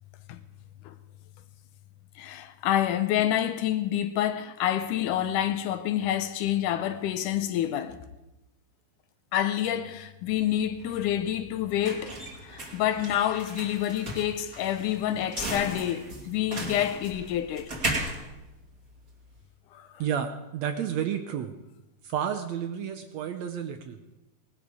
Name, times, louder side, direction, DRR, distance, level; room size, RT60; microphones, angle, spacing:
voice 1, 2.2-8.0 9.3-12.2 12.4-17.7 19.7-19.9, left 11 dB, 80° left, 2.2 m, -28 dB
sound 1, 10.3-19.4, right 2 dB, 25° right, 2.8 m, -37 dB
voice 2, 20.0-21.5 22.0-24.0, right 8 dB, 75° right, 1.7 m, -31 dB
19.0 x 12.5 x 4.9 m
omnidirectional pair, 3.7 m